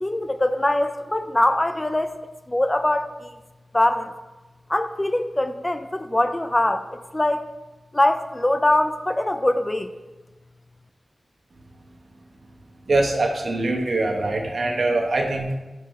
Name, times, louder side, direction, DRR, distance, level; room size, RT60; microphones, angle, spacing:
voice 1, 0.0-2.2 2.5-3.3 3.7-4.1 4.7-7.5 7.9-9.9, left 1 dB, 20° left, 9 dB, 0.4 m, -22 dB
voice 2, 12.9-15.5, right 2 dB, 65° right, 1 dB, 0.8 m, -23 dB
4.7 x 4.7 x 5.2 m, 1.1 s
wide cardioid pair, 100°, 0 cm